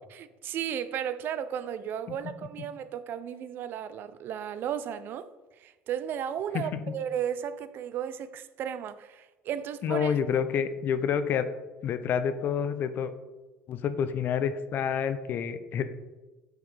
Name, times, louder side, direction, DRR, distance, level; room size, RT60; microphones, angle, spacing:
voice 1, 0.1-10.2, right 9 dB, 50° right, 0.4 m, -34 dB
voice 2, 9.8-11.4 11.8-13.1 13.7-15.8, left 7 dB, 45° left, 0.5 m, -28 dB
8.6 x 4.9 x 3.3 m
cardioid pair, 125°, 5 cm